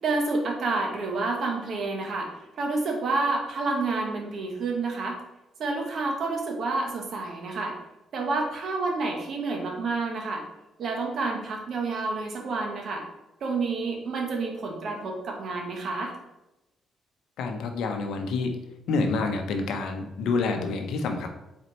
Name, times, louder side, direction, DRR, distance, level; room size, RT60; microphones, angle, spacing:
voice 1, 0.0-2.3 2.6-5.2 5.6-7.7 8.1-10.4 10.8-13.0 13.4-16.1, right 3 dB, 60° right, 2 dB, 1.1 m, -29 dB
voice 2, 17.4-18.6 18.9-21.3, left 4 dB, 80° left, 5 dB, 0.6 m, -28 dB
4.2 x 4.0 x 3.1 m, 0.95 s
cardioid pair, 90°, 0 cm